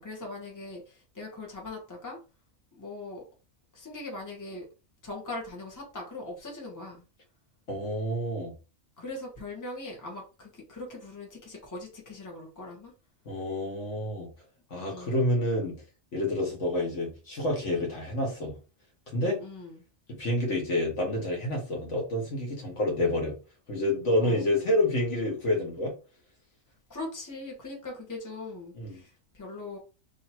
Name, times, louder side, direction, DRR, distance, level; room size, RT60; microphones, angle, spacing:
voice 1, 0.0-2.2 2.7-3.2 3.7-4.6 5.0-7.0 9.0-12.9 14.9-15.3 19.4-19.8 24.2-24.5 26.9-29.8, left 2 dB, 15° left, 1.2 m, -40 dB
voice 2, 7.7-8.5 13.2-14.3 14.7-15.8 16.1-18.6 19.1-19.4 20.1-23.4 23.7-25.9 28.7-29.0, left 1 dB, 65° left, 1.6 m, -28 dB
3.2 x 2.7 x 4.3 m
omnidirectional pair, 1.4 m